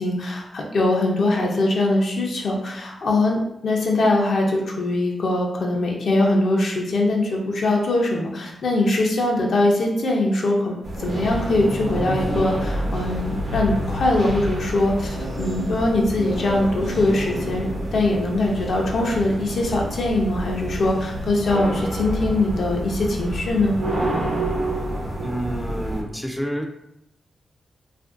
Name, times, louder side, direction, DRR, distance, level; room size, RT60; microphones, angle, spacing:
voice 1, 0.0-23.8, left 2 dB, 65° left, -1 dB, 0.5 m, -22 dB
sound 1, 10.8-26.0, right 1 dB, 55° right, 0.7 m, -28 dB
voice 2, 25.2-26.7, equal, 5° left, 3 dB, 0.3 m, -28 dB
2.7 x 2.5 x 2.4 m, 0.81 s
wide cardioid pair, 115°, 0 cm